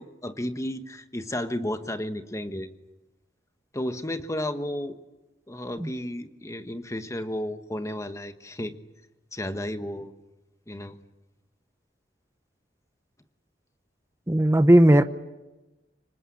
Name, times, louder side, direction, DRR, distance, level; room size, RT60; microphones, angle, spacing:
voice 1, 0.0-2.7 3.7-5.0 5.5-8.7 9.3-10.1 10.7-11.0, left 1 dB, 15° left, 1.3 m, -33 dB
voice 2, 14.3-15.0, right 1 dB, 15° right, 0.9 m, -16 dB
26.0 x 23.5 x 8.7 m
head